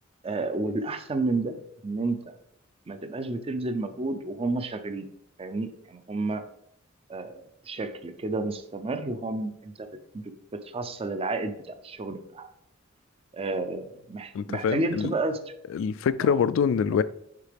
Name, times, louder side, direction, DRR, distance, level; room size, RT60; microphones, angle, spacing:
voice 1, 0.2-1.6 1.8-2.3 2.9-5.1 5.4-6.4 7.1-9.9 10.1-10.2 10.5-12.5 13.3-15.4 16.2-16.4, right 2 dB, 30° right, 0.5 m, -31 dB
voice 2, 14.3-15.1 15.7-17.0, left 7 dB, 70° left, 0.3 m, -25 dB
6.6 x 4.9 x 3.4 m
head